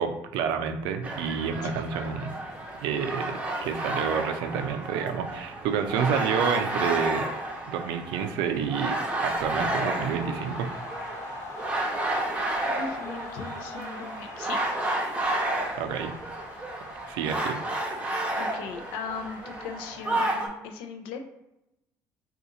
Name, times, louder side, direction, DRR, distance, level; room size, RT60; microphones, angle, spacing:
voice 1, 0.0-2.3 2.8-7.3 7.7-10.7 15.8-16.1 17.1-17.6, right 7 dB, 75° right, 7 dB, 0.4 m, -29 dB
sound 1, 1.0-20.5, right 1 dB, 15° right, 0.8 m, -31 dB
sound 2, 2.5-20.5, left 1 dB, 35° left, 1.0 m, -45 dB
voice 2, 12.6-14.6 18.4-21.2, left 5 dB, 80° left, 5 dB, 0.5 m, -38 dB
2.7 x 2.4 x 3.7 m, 0.90 s
supercardioid pair, 80°, 8 cm